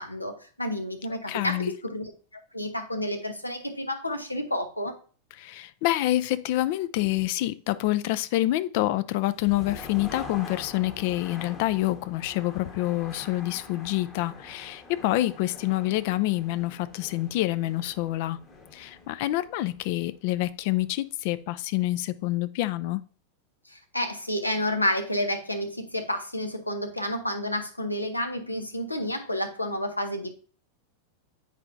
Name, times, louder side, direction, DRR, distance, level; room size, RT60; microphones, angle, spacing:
voice 1, 0.0-4.9 23.7-30.3, left 1 dB, 85° left, 0.9 m, -30 dB
voice 2, 1.3-1.7 5.4-18.4 18.7-23.0, left 16 dB, 50° left, 0.4 m, -27 dB
sound 1, 9.2-21.0, left 3 dB, 25° left, 1.3 m, -45 dB
8.1 x 4.8 x 2.6 m
figure-of-eight pair, 90°, 0 cm